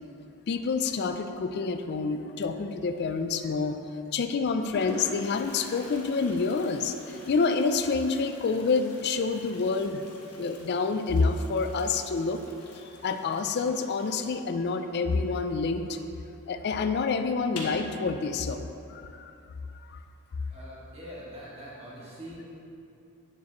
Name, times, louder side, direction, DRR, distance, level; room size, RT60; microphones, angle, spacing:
voice 1, 0.5-3.8 4.1-10.0 10.4-12.4 12.7-16.0 16.5-18.6 18.9-19.3 19.9-20.0, left 4 dB, 50° left, 8 dB, 0.3 m, -28 dB
Toilet flush, 3.3-3.7 4.4-4.5 4.7-16.0 16.2-16.3 16.7-16.8 17.4-17.9, left 1 dB, 85° left, 1.2 m, -45 dB
voice 2, 20.5-22.6, equal, 25° right, -8 dB, 1.9 m, -43 dB
9.0 x 7.0 x 3.0 m, 2.7 s
head